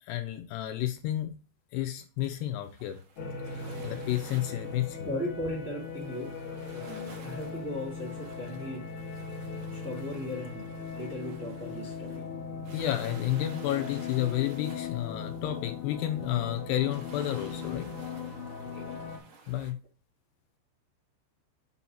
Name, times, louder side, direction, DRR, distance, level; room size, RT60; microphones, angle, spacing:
voice 1, 0.1-1.3 1.7-3.0 3.8-5.1 12.7-17.9 19.5-19.8, left 13 dB, 80° left, 6 dB, 2.6 m, -31 dB
sound 1, 2.2-19.7, right 4 dB, 65° right, 2.2 m, -53 dB
sound 2, 3.2-19.2, left 5 dB, 65° left, 2.2 m, -39 dB
voice 2, 5.0-6.4 6.7-8.9 9.7-12.3 18.6-19.0, left 1 dB, 35° right, -4 dB, 1.2 m, -37 dB
7.0 x 2.8 x 5.7 m, 0.34 s
omnidirectional pair, 5.1 m